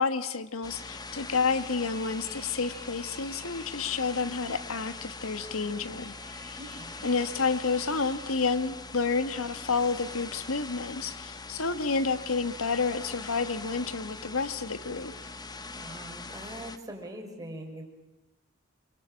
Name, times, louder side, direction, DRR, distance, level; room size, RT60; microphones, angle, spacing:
voice 1, 0.0-6.1 7.0-15.1, left 4 dB, 80° left, 11 dB, 1.6 m, -30 dB
sound 1, 0.6-8.7, left 3 dB, 50° left, 6.6 m, -52 dB
sound 2, 0.6-16.8, left 3 dB, 20° left, 1.2 m, -42 dB
voice 2, 6.6-7.1 15.7-17.8, right 1 dB, 15° right, 2 dB, 5.3 m, -42 dB
28.0 x 23.0 x 8.8 m, 0.94 s
head